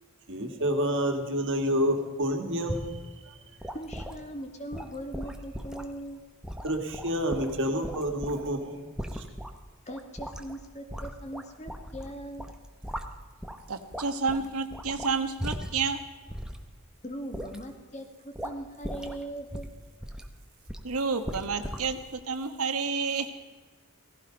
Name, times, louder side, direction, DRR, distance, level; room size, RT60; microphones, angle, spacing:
voice 1, 0.3-3.0 3.3-3.4 6.6-9.2, equal, 60° right, 4 dB, 2.1 m, -29 dB
sound 1, 2.7-3.0 3.6-4.2 4.7-5.9 6.4-8.5 9.0-9.5 9.9-10.6 10.9-12.1 12.4-13.6 13.9-15.9 16.3-16.6 17.3-17.6 18.3-18.6 18.8-19.2 19.5-20.3 20.7-20.9 21.2-21.9, equal, 5° right, 1.0 m, -38 dB
voice 2, 3.7-6.2 9.9-12.5 17.0-19.7, right 1 dB, 35° left, 4 dB, 1.9 m, -40 dB
voice 3, 13.7-16.0 20.8-23.3, right 4 dB, 85° right, 7 dB, 1.2 m, -30 dB
17.0 x 15.5 x 5.2 m, 1.3 s
head